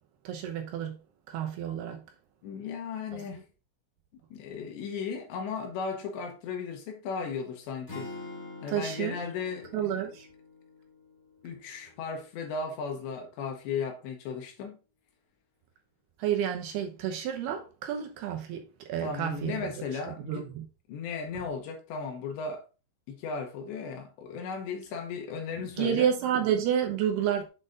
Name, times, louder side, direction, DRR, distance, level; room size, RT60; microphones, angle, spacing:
voice 1, 0.2-1.0 1.3-2.0 3.1-3.3 8.7-9.2 9.7-10.3 16.2-19.7 20.1-20.7 25.8-27.5, right 9 dB, 75° right, 2.4 m, -30 dB
voice 2, 2.4-3.5 4.3-8.1 8.6-9.9 11.4-14.8 19.0-20.4 20.9-22.6 23.1-26.1, left 5 dB, 75° left, 3.2 m, -36 dB
sound 1, 7.9-12.0, left 3 dB, 45° left, 0.9 m, -46 dB
7.8 x 4.0 x 3.7 m
omnidirectional pair, 5.5 m